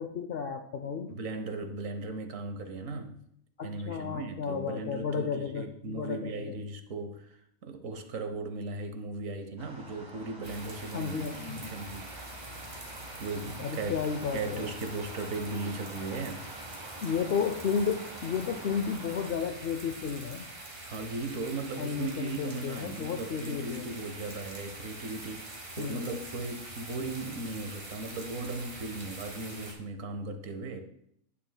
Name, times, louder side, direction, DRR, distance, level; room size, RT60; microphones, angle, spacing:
voice 1, 0.0-1.1 3.6-6.5 10.9-11.6 13.6-14.7 17.0-20.5 21.8-24.0 25.8-26.1, left 6 dB, 65° left, 6 dB, 0.6 m, -33 dB
voice 2, 1.1-3.2 3.6-7.3 7.6-12.3 13.2-14.0 14.3-16.4 20.8-30.8, right 3 dB, 70° right, 7 dB, 1.2 m, -37 dB
sound 1, 9.6-19.3, right 2 dB, 20° right, 1.0 m, -47 dB
sound 2, 10.4-29.7, right 2 dB, 45° right, 1.6 m, -45 dB
9.9 x 8.6 x 2.2 m, 0.70 s
omnidirectional pair, 1.4 m